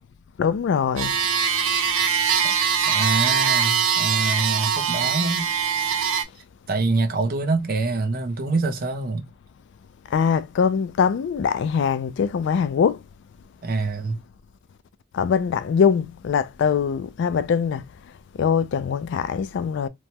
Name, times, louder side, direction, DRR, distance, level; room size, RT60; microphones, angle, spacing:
voice 1, 0.4-1.1 10.1-13.0 15.1-17.8 18.4-19.9, left 6 dB, 60° left, 0.3 m, -22 dB
sound 1, 1.0-6.2, right 7 dB, 85° right, 0.6 m, -22 dB
voice 2, 2.9-5.5 6.7-9.3 13.6-14.2, right 3 dB, 45° right, 0.6 m, -25 dB
3.0 x 2.2 x 2.7 m
head